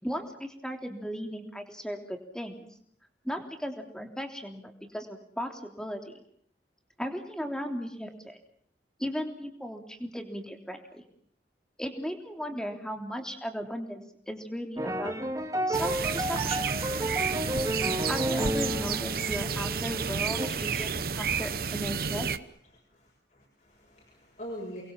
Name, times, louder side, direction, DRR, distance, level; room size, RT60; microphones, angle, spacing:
voice 1, 0.0-2.7 3.2-6.2 7.0-8.4 9.0-11.0 11.8-15.1 15.7-16.8 18.0-22.3, equal, 5° left, 4 dB, 3.3 m, -36 dB
sound 1, 14.8-20.5, right 1 dB, 20° right, 2.1 m, -32 dB
sound 2, 15.7-22.4, right 6 dB, 55° right, 1.0 m, -31 dB
voice 2, 22.9-24.8, equal, 45° left, -2 dB, 7.8 m, -43 dB
29.5 x 22.0 x 7.4 m, 0.65 s
head